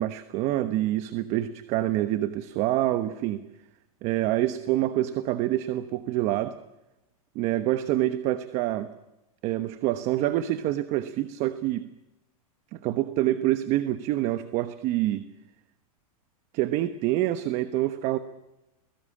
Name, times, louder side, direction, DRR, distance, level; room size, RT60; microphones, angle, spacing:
voice 1, 0.0-3.4 4.0-6.5 7.3-8.9 9.4-11.9 12.7-15.3 16.5-18.2, right 14 dB, 35° right, 10 dB, 1.2 m, -26 dB
29.0 x 20.0 x 8.7 m, 0.98 s
supercardioid pair, 155°, 19 cm